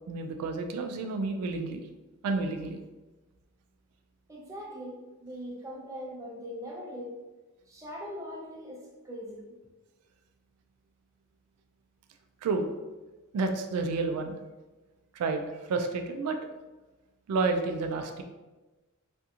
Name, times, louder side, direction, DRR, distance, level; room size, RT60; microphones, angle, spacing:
voice 1, 0.1-1.8 2.2-2.8 12.4-12.7 13.3-14.4 15.1-16.4 17.3-18.2, right 3 dB, 85° right, 5 dB, 0.3 m, -30 dB
voice 2, 4.3-7.2 7.7-9.5, equal, 15° right, -3 dB, 0.5 m, -41 dB
2.8 x 2.5 x 2.4 m, 1.2 s
head